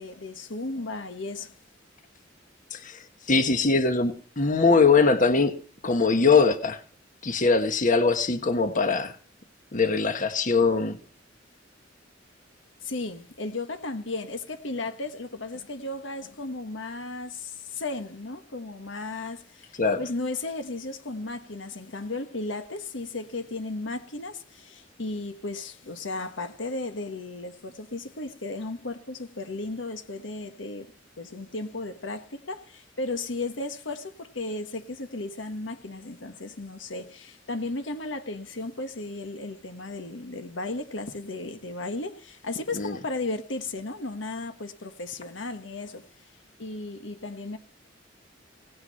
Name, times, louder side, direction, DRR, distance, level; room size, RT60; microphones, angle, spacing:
voice 1, 0.0-1.5 12.8-46.1 46.6-47.6, left 2 dB, 75° left, 1.5 m, -35 dB
voice 2, 3.3-5.6 5.8-6.8 7.2-9.1 9.7-11.0 19.8-20.0 42.7-43.0, left 4 dB, 45° left, 1.4 m, -22 dB
18.0 x 9.5 x 5.6 m
head